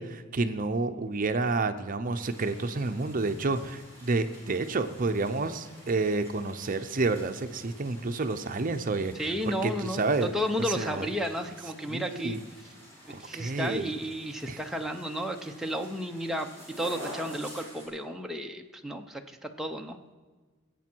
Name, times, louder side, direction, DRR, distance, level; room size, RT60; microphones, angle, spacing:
voice 1, 0.0-10.3 10.7-11.1 11.9-12.4 13.1-13.9 14.5-14.6, right 3 dB, 45° right, 9 dB, 0.7 m, -29 dB
sound 1, 2.2-17.9, equal, 15° left, 5.3 m, -49 dB
voice 2, 9.2-12.4 13.1-16.5 16.8-20.0, equal, ahead, 3 dB, 0.7 m, -33 dB
20.0 x 8.4 x 4.6 m, 1.4 s
head